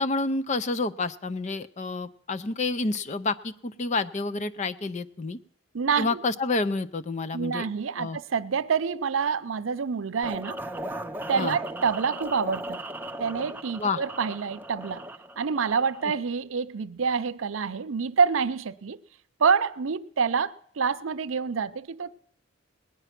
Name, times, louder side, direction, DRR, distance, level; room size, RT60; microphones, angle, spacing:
voice 1, 0.0-5.4 6.0-7.7 8.0-8.2 11.3-11.6 13.8-14.0, left 3 dB, 35° left, 0.6 m, -29 dB
voice 2, 5.7-6.2 7.3-10.6 11.3-12.8 13.2-15.0 15.4-19.0 19.4-22.2, right 6 dB, 85° right, 0.6 m, -27 dB
sound 1, 10.2-16.2, right 1 dB, 10° right, 0.5 m, -37 dB
18.5 x 10.0 x 5.9 m
head